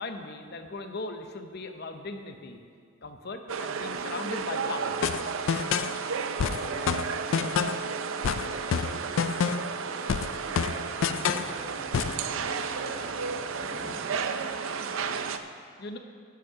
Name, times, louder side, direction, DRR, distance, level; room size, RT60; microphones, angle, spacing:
voice 1, 0.0-2.6 3.0-5.0 5.8-5.9 15.8-16.0, left 3 dB, 50° left, 7 dB, 0.7 m, -38 dB
sound 1, 3.5-15.4, right 5 dB, 70° right, 0.5 m, -33 dB
sound 2, 5.0-6.0 6.4-7.9 8.2-9.8 10.1-11.5 11.9-12.2, left 7 dB, 65° left, 0.3 m, -28 dB
voice 2, 5.3-15.3, equal, 20° right, -3 dB, 1.7 m, -46 dB
11.0 x 7.1 x 5.6 m, 2.2 s
head